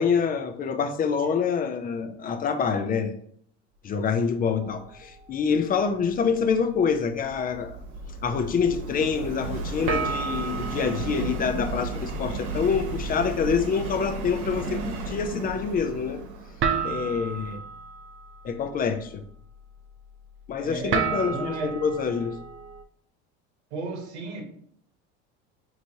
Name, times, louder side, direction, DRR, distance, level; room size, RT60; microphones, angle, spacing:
voice 1, 0.0-3.2 3.8-7.8 8.2-16.2 16.8-17.6 18.4-19.2 20.5-22.4, left 6 dB, 25° left, 9 dB, 0.5 m, -26 dB
sound 1, 4.6-6.2 6.5-6.9 7.5-7.6 9.9-22.8, right 6 dB, 40° right, 0.5 m, -35 dB
Subway metro underground, 6.2-17.5, right 3 dB, 60° right, 1.0 m, -34 dB
voice 2, 20.6-21.8 23.7-24.4, right 3 dB, 90° right, 2 dB, 1.1 m, -34 dB
4.9 x 3.1 x 2.7 m, 0.64 s
supercardioid pair, 105°, 33 cm